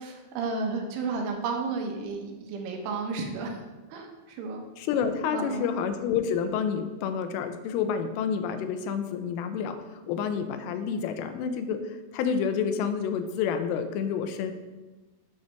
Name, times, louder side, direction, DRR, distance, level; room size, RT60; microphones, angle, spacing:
voice 1, 0.0-3.6 3.9-4.6 5.3-5.7, right 4 dB, 75° right, 2 dB, 3.5 m, -32 dB
voice 2, 4.8-14.5, left 7 dB, 85° left, 8 dB, 3.1 m, -29 dB
9.6 x 5.0 x 6.4 m, 1.2 s
omnidirectional pair, 5.8 m